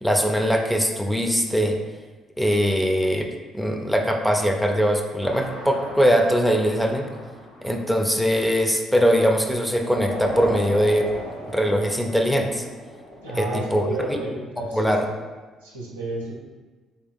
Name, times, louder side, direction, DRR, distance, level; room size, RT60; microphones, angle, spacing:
voice 1, 0.0-1.8 2.4-3.3 3.5-7.1 7.6-11.1 11.5-12.6 13.4-14.2 14.7-15.0, equal, 5° left, 3 dB, 0.5 m, -21 dB
sound 1, 5.2-9.2 9.7-13.9, equal, 90° left, 0.7 m, -37 dB
voice 2, 13.2-15.2 15.6-16.4, right 2 dB, 85° right, -4 dB, 0.6 m, -32 dB
3.3 x 2.9 x 3.5 m, 1.3 s
figure-of-eight pair, 45°, 0 cm